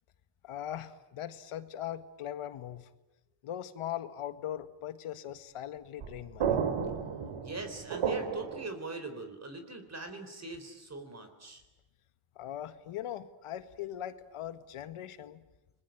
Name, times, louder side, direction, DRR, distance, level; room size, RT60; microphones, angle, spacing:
voice 1, 0.4-2.9 3.4-6.6 12.3-15.4, left 11 dB, 80° left, 11 dB, 1.8 m, -40 dB
sound 1, 6.0-8.7, right 7 dB, 80° right, 3.4 m, -32 dB
voice 2, 7.4-11.6, right 3 dB, 30° right, 7 dB, 3.9 m, -41 dB
30.0 x 21.5 x 9.2 m, 0.98 s
cardioid pair, 110°, 50 cm